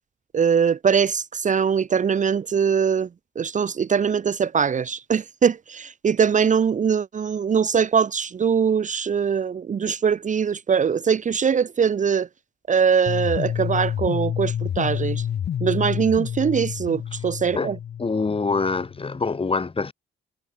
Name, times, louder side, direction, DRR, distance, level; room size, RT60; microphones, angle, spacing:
voice 1, 0.3-3.1 3.4-12.3 12.7-15.3 15.6-17.8, right 7 dB, 40° right, 0.9 m, -22 dB
sound 1, 13.1-19.0, left 9 dB, 60° left, 1.8 m, -29 dB
voice 2, 18.0-19.9, left 4 dB, 25° left, 3.7 m, -25 dB
cardioid pair, 90°, 20 cm